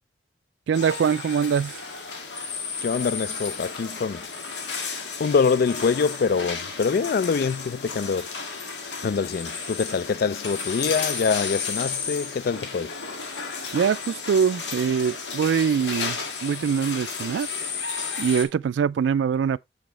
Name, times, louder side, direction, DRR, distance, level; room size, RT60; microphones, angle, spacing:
sound 1, 0.7-18.5, left 5 dB, 90° left, 1.7 m, -33 dB
voice 1, 0.7-1.7 13.7-17.5 18.2-19.6, right 7 dB, 90° right, 0.3 m, -23 dB
voice 2, 2.8-4.3 5.2-8.3 9.0-12.9, left 5 dB, 55° left, 0.3 m, -24 dB
6.9 x 6.2 x 3.2 m
head